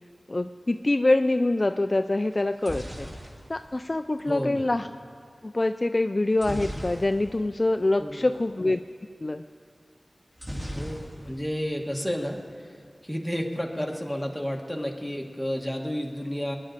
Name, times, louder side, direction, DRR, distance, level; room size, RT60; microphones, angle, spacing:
voice 1, 0.3-3.1 3.5-4.9 5.4-8.8 9.2-9.4, left 2 dB, 40° left, 8 dB, 0.3 m, -25 dB
sound 1, 2.3-4.4 6.4-7.5 7.8-8.0 8.2-8.4 10.4-11.5 11.8-12.4, equal, 15° right, 2.6 m, -38 dB
voice 2, 4.3-4.6 8.0-8.2 10.7-12.8 13.0-16.6, equal, ahead, 0 dB, 1.6 m, -31 dB
23.5 x 10.5 x 4.1 m, 2.1 s
wide cardioid pair, 65°, 0 cm